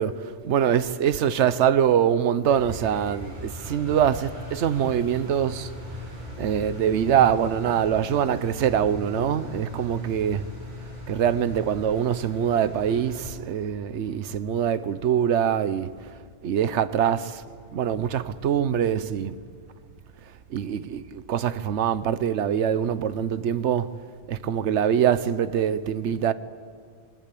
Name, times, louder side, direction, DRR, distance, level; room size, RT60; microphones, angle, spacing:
voice 1, 0.0-5.7 6.4-10.4 11.1-15.9 16.4-17.4 17.7-19.4 20.5-23.9 24.3-26.3, right 9 dB, 80° right, 1.1 m, -24 dB
Engine, 2.5-13.3, left 1 dB, 40° right, 7.1 m, -39 dB
23.5 x 21.0 x 8.4 m
omnidirectional pair, 1.2 m